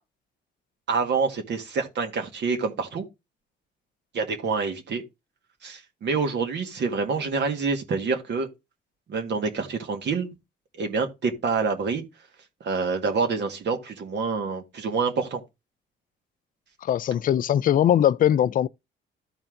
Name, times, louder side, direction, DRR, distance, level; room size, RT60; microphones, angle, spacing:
voice 1, 0.9-3.1 4.1-5.0 5.6-8.5 9.1-10.3 10.8-12.0 12.6-15.4, right 4 dB, 60° right, 1.9 m, -27 dB
voice 2, 16.8-18.7, left 10 dB, 45° left, 0.4 m, -21 dB
13.0 x 4.4 x 3.8 m
cardioid pair, 90°, 20 cm